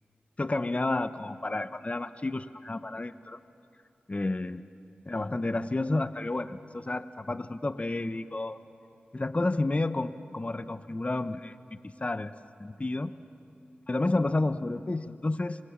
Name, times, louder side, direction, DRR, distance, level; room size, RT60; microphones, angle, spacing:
voice 1, 0.4-3.4 4.1-4.6 5.1-8.6 9.1-11.5 11.8-12.3 12.6-13.1 13.9-15.6, left 2 dB, 35° left, 12 dB, 1.0 m, -30 dB
27.0 x 26.0 x 7.6 m, 2.6 s
cardioid pair, 40°, 4 cm